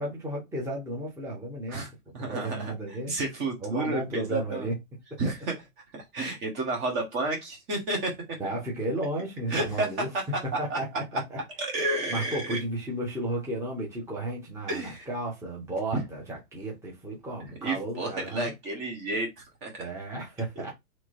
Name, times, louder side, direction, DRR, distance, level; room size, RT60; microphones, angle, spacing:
voice 1, 0.0-1.9 2.3-3.2 3.6-4.8 5.1-5.2 8.4-10.1 10.6-11.4 12.1-18.5 19.8-20.7, right 1 dB, 5° right, 1.1 m, -33 dB
voice 2, 1.7-4.7 5.2-5.5 5.9-8.1 9.5-9.9 10.7-10.8 11.6-12.6 14.7-15.1 15.9-16.0 17.6-19.7 20.6-20.7, right 2 dB, 25° right, 1.2 m, -31 dB
3.1 x 3.0 x 2.7 m
hypercardioid pair, 125°, 44 cm